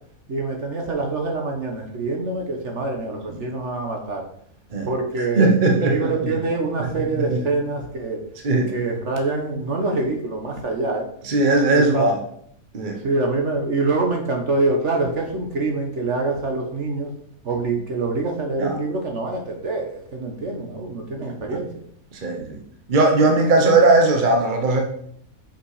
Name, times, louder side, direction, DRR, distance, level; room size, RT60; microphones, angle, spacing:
voice 1, 0.3-4.2 4.8-8.2 8.7-11.1 11.7-12.0 13.0-17.1 17.4-21.7, right 3 dB, 55° right, 2 dB, 1.4 m, -25 dB
voice 2, 5.2-6.1 6.8-6.9 7.1-7.4 8.4-8.7 11.2-12.2 12.7-13.0 18.6-18.8 21.5-21.6 22.1-22.6 22.9-24.8, right 2 dB, 35° right, 2 dB, 1.2 m, -18 dB
6.7 x 5.6 x 4.9 m, 0.67 s
omnidirectional pair, 1.5 m